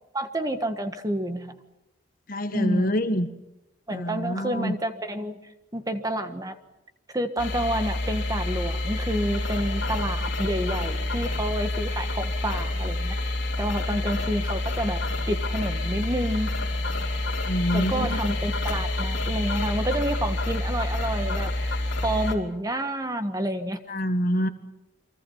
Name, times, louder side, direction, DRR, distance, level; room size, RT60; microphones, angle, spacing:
voice 1, 0.1-1.6 2.5-2.9 3.9-5.4 5.7-6.6 7.1-15.0 15.3-16.5 17.7-23.8, right 1 dB, 20° right, 8 dB, 1.5 m, -29 dB
voice 2, 2.3-3.3 3.9-4.7 13.9-14.0 17.5-18.2 23.9-24.5, equal, 45° left, 8 dB, 1.7 m, -26 dB
sound 1, 7.4-22.3, left 2 dB, 65° left, 3.6 m, -28 dB
29.5 x 24.0 x 5.7 m, 0.90 s
head